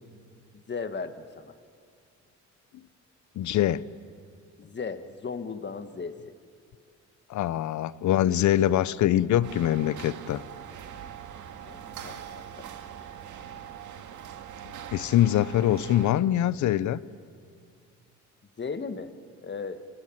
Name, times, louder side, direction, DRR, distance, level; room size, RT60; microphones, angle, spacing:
voice 1, 0.7-1.5 4.6-6.1 11.7-12.6 18.6-19.1 19.4-19.8, left 5 dB, 35° left, 10 dB, 1.6 m, -36 dB
voice 2, 3.4-3.9 7.3-10.5 14.9-17.0, left 12 dB, 70° left, 18 dB, 0.8 m, -24 dB
sound 1, 9.4-16.1, right 9 dB, 75° right, 2.0 m, -42 dB
29.0 x 22.0 x 9.2 m, 2.2 s
cardioid pair, 90°, 30 cm